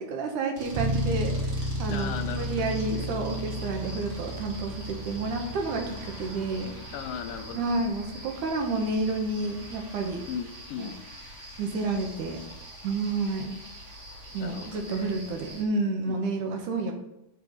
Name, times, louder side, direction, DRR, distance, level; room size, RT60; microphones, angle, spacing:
voice 1, 0.0-6.7 7.5-10.2 10.8-10.9 11.6-12.4 12.8-13.6 14.3-17.0, right 3 dB, 70° right, 3 dB, 2.5 m, -30 dB
sound 1, 0.5-15.6, equal, 35° right, 1.9 m, -44 dB
Bass guitar, 0.7-10.4, right 1 dB, 90° right, 1.3 m, -35 dB
voice 2, 1.9-2.5 2.9-3.1 6.9-7.7 10.3-11.0 14.4-15.2 16.1-16.6, left 8 dB, 80° left, 9 dB, 2.2 m, -37 dB
8.9 x 4.5 x 5.1 m, 0.87 s
omnidirectional pair, 4.0 m